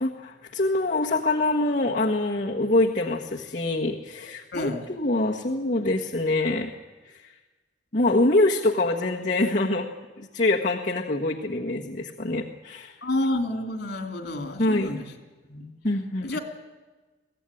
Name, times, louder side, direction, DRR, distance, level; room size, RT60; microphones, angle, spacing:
voice 1, 0.0-6.7 7.0-7.3 7.9-9.9 10.2-12.9 14.6-14.9 15.8-16.4, left 2 dB, 45° left, -2 dB, 1.5 m, -25 dB
voice 2, 4.5-4.9 13.0-15.1 15.5-15.7 16.2-16.4, left 1 dB, 65° left, 6 dB, 3.0 m, -29 dB
23.0 x 16.0 x 10.0 m, 1.3 s
head